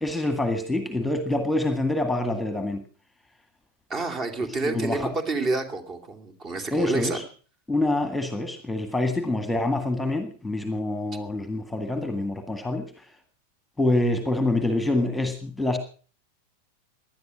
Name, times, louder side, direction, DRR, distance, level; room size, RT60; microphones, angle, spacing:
voice 1, 0.0-2.8 4.6-5.1 6.7-7.2 7.7-13.1 13.8-15.8, left 2 dB, 5° left, 9 dB, 1.9 m, -26 dB
voice 2, 3.9-7.2, right 3 dB, 25° right, 9 dB, 2.8 m, -29 dB
18.5 x 11.5 x 6.2 m, 0.41 s
figure-of-eight pair, 90°, 0 cm